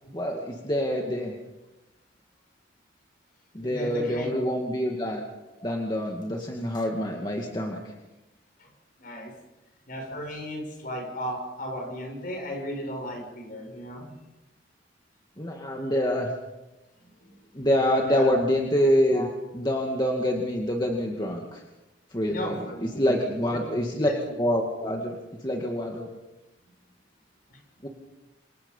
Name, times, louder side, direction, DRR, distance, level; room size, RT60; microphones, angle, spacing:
voice 1, 0.1-1.3 3.5-5.2 5.6-7.9 15.4-16.3 17.5-21.6 22.1-22.5 23.0-24.1 24.4-25.2 25.4-26.1 27.8-27.9, equal, 25° left, 0 dB, 2.2 m, -26 dB
voice 2, 3.6-4.5 8.6-8.7 9.0-9.3 9.9-14.1 17.0-17.6 18.0-18.3 22.3-23.7 24.1-24.4 26.6-26.7 27.5-27.6, equal, 50° left, 3 dB, 6.8 m, -36 dB
28.0 x 25.0 x 5.6 m, 1.0 s
head